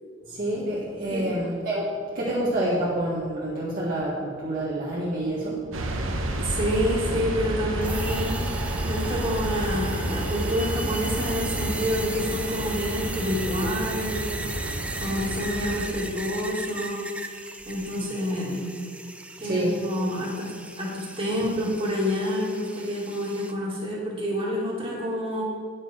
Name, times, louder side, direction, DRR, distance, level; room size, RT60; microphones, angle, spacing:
voice 1, 0.3-1.9 2.1-5.6 19.4-19.8, right 1 dB, 45° right, -8 dB, 1.7 m, -27 dB
sound 1, 5.7-15.9, right 1 dB, 90° right, 1.0 m, -30 dB
voice 2, 6.4-8.5 8.8-17.1 17.3-18.7 19.4-20.5 20.8-25.4, equal, 30° right, -5 dB, 2.4 m, -28 dB
sound 2, 7.8-23.5, right 2 dB, 5° right, 0.4 m, -37 dB
9.5 x 6.9 x 4.5 m, 2.2 s
head